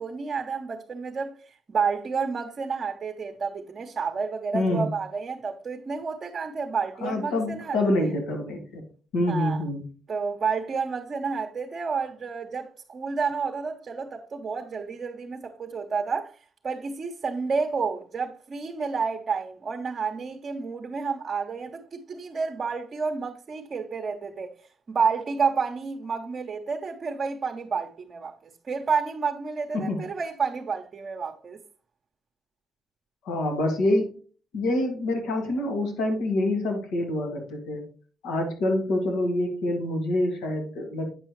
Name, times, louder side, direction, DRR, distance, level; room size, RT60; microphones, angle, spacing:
voice 1, 0.0-7.8 9.3-9.6 10.1-16.4 16.6-24.6 24.9-31.6, right 5 dB, 45° right, 0.8 m, -30 dB
voice 2, 4.5-4.9 7.0-8.8 9.1-9.8 29.7-30.0 33.2-34.1 34.5-37.8 38.2-41.1, left 1 dB, 90° left, 1.8 m, -26 dB
8.4 x 5.4 x 3.1 m
cardioid pair, 90°, 0 cm